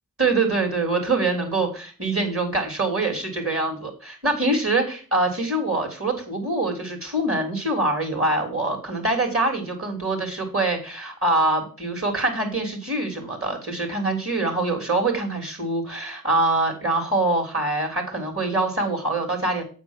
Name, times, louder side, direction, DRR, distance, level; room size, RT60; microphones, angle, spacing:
voice 1, 0.2-19.6, right 2 dB, 40° right, 2 dB, 3.3 m, -24 dB
8.3 x 4.5 x 7.3 m, 0.38 s
wide cardioid pair, 60°, 34 cm